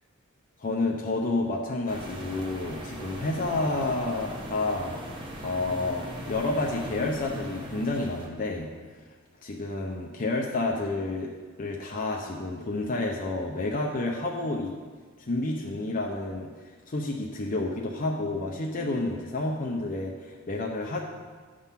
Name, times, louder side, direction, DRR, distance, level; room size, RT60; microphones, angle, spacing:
voice 1, 0.6-4.9 5.4-8.7 9.4-11.3 11.6-14.7 15.2-16.5 16.9-21.0, left 2 dB, 45° left, -1 dB, 0.7 m, -30 dB
sound 1, 1.9-8.3, equal, 25° right, 1.1 m, -39 dB
9.4 x 3.7 x 5.7 m, 1.5 s
head